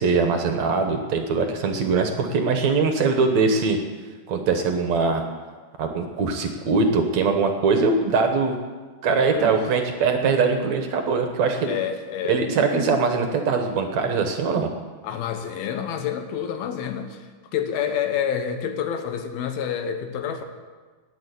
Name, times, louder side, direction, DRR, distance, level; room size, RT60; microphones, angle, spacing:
voice 1, 0.0-3.8 4.3-5.2 5.8-8.6 9.0-11.7 12.3-14.7, right 4 dB, 65° right, 5 dB, 1.9 m, -22 dB
voice 2, 9.2-9.5 11.6-12.4 15.0-20.4, left 8 dB, 80° left, 7 dB, 2.9 m, -28 dB
19.0 x 6.7 x 8.2 m, 1.4 s
omnidirectional pair, 4.4 m